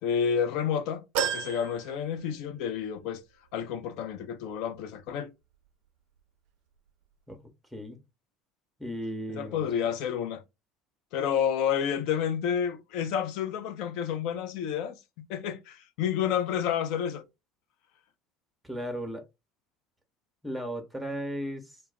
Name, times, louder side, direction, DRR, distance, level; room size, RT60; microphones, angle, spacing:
voice 1, 0.0-3.2 3.5-5.3 9.4-10.4 11.1-15.0 15.3-17.2, left 8 dB, 60° left, 0.4 m, -30 dB
sound 1, 1.1-2.8 3.2-3.3 4.5-4.6, right 9 dB, 65° right, 0.4 m, -33 dB
voice 2, 8.8-9.7 18.6-19.3 20.4-21.8, equal, ahead, 0.8 m, -35 dB
2.3 x 2.1 x 3.2 m
hypercardioid pair, 70°, 0 cm